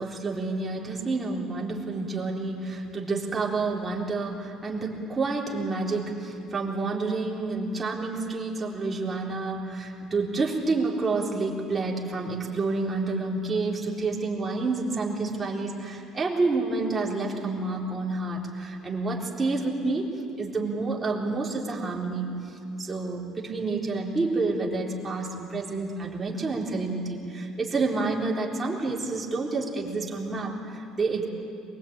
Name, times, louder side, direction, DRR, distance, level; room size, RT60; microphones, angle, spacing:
voice 1, 0.0-20.1 20.4-31.3, right 3 dB, 20° right, -2 dB, 3.8 m, -29 dB
23.0 x 22.0 x 8.8 m, 2.6 s
cardioid pair, 135°, 0 cm